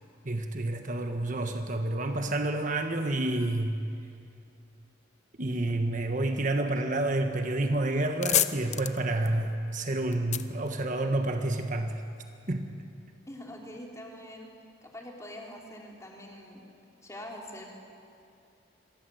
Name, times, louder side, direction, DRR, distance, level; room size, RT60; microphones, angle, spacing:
voice 1, 0.2-3.8 5.4-12.0 12.5-12.7, right 2 dB, 40° right, 5 dB, 1.3 m, -29 dB
sound 1, 7.9-11.5, left 10 dB, 35° left, 0.8 m, -31 dB
voice 2, 13.3-14.5 14.8-16.6 17.0-17.6, left 1 dB, 15° left, -1 dB, 3.8 m, -44 dB
27.0 x 22.5 x 7.9 m, 2.5 s
head